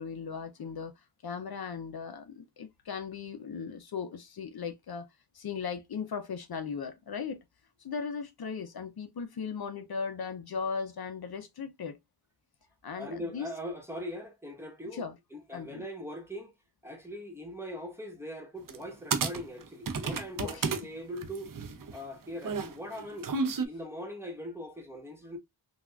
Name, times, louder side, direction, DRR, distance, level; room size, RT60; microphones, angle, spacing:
voice 1, 0.0-5.1 5.3-7.4 7.8-12.0 12.8-13.5 14.9-15.1 15.5-15.8 20.4-20.7, left 6 dB, 65° left, 0.5 m, -37 dB
voice 2, 12.9-15.0 15.3-16.5 16.8-21.5 21.9-23.3 23.6-25.4, equal, 5° right, 1.1 m, -41 dB
sound 1, 18.7-18.8 19.1-20.8 21.2-23.6, right 4 dB, 55° right, 0.5 m, -32 dB
3.4 x 2.3 x 2.3 m
wide cardioid pair, 45°, 40 cm